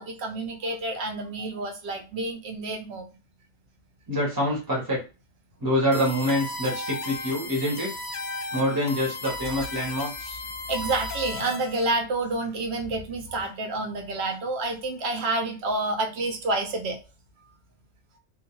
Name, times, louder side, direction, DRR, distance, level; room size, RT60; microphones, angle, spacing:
voice 1, 0.0-3.1 6.9-7.0 8.4-8.6 9.4-9.5 10.7-17.0, right 2 dB, 65° right, 4 dB, 0.8 m, -29 dB
voice 2, 4.1-5.0 5.6-7.9 8.5-10.4, equal, 20° right, -3 dB, 0.8 m, -26 dB
sound 1, 5.9-11.9, left 2 dB, 60° left, 0.4 m, -35 dB
2.3 x 2.1 x 3.0 m, 0.32 s
omnidirectional pair, 1.3 m